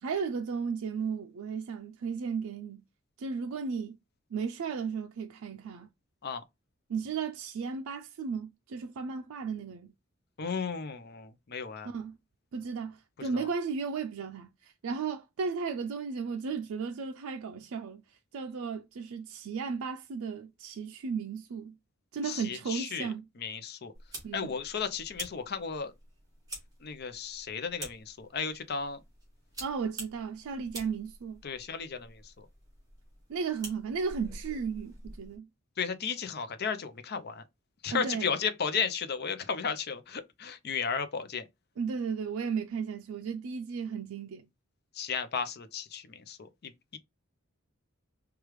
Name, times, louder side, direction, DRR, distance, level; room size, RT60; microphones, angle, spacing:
voice 1, 0.0-2.8 3.2-4.0 4.3-5.9 6.9-9.9 11.8-12.2 12.5-18.0 18.3-21.8 22.1-23.2 24.2-24.5 29.6-31.4 33.3-35.5 37.9-38.3 41.8-44.4, right 5 dB, 80° right, 0.4 m, -35 dB
voice 2, 10.4-11.9 13.3-13.5 22.2-23.1 23.4-23.9 24.3-25.9 26.8-29.0 31.4-32.5 35.8-37.4 37.8-41.4 44.9-47.0, left 6 dB, 50° left, 0.5 m, -34 dB
sound 1, 23.9-35.4, right 1 dB, 15° right, 1.9 m, -48 dB
4.8 x 2.3 x 3.1 m
head